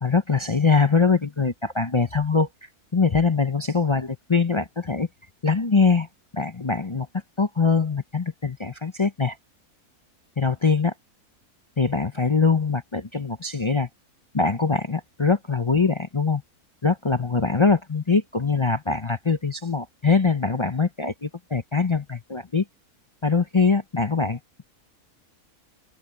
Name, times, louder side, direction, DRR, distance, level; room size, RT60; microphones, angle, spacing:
voice 1, 0.0-5.1 5.4-6.1 6.3-7.1 7.4-9.4 10.4-10.9 11.8-13.9 14.3-16.4 16.8-22.6 23.2-24.6, left 4 dB, 35° left, 0.4 m, -23 dB
open air
omnidirectional pair, 1.6 m